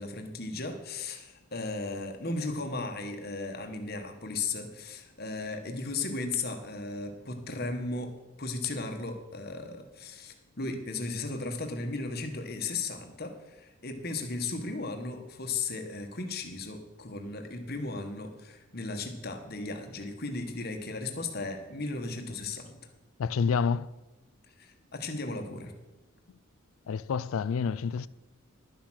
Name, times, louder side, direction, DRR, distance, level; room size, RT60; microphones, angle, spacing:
voice 1, 0.0-8.1 8.4-22.8 24.6-25.7, left 3 dB, 45° left, 1.2 m, -36 dB
voice 2, 23.2-23.9 26.9-28.1, left 5 dB, 75° left, 0.4 m, -28 dB
11.0 x 7.4 x 6.3 m
head